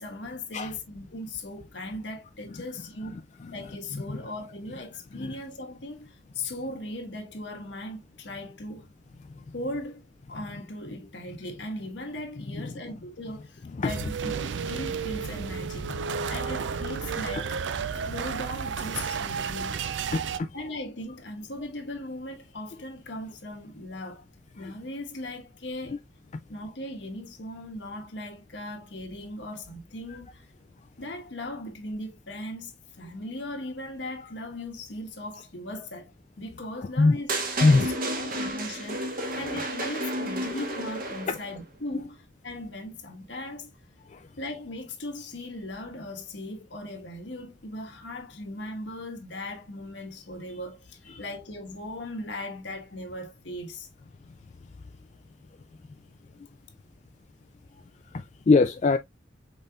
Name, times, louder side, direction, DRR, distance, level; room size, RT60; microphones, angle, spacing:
voice 1, 0.0-3.1 3.5-8.9 9.5-10.0 10.3-17.6 18.0-19.8 20.5-24.2 24.6-26.0 26.5-30.5 31.0-37.3 37.7-37.9 38.2-43.7 44.4-53.9, left 1 dB, 70° left, 1.3 m, -38 dB
sound 1, 13.9-20.4, right 6 dB, 85° right, 0.4 m, -32 dB
voice 2, 15.9-16.3 17.9-18.1 20.1-20.5 24.6-24.7 25.9-26.0 37.0-37.2 37.6-37.9 41.3-41.4 44.1-44.3 51.1-51.2 58.1-59.0, left 3 dB, 40° left, 0.3 m, -24 dB
sound 2, 37.3-41.5, right 1 dB, 50° right, 1.2 m, -31 dB
5.4 x 4.0 x 2.3 m
head